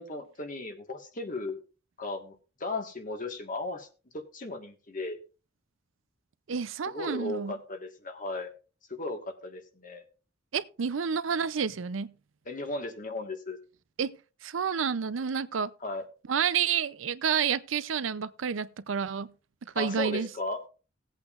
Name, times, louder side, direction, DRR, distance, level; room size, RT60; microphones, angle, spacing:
voice 1, 0.0-1.6 2.0-3.9 4.1-5.2 6.9-8.5 8.9-10.0 12.4-13.6 15.8-16.0 19.7-20.6, left 2 dB, 45° left, 1.6 m, -36 dB
voice 2, 6.5-7.5 10.5-12.1 14.0-14.1 14.4-15.7 16.3-19.3 19.8-20.3, right 7 dB, 80° right, 0.5 m, -29 dB
18.5 x 8.2 x 2.5 m
head